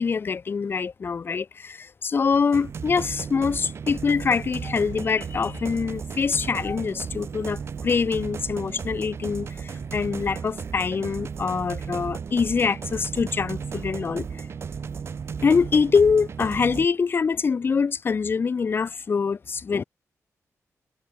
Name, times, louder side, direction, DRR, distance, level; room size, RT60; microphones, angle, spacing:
voice 1, 0.0-14.5 15.4-19.8, left 5 dB, 40° left, 1.0 m, -24 dB
sound 1, 2.5-16.8, right 6 dB, 50° right, 1.1 m, -35 dB
wide cardioid pair, 160°, 6 cm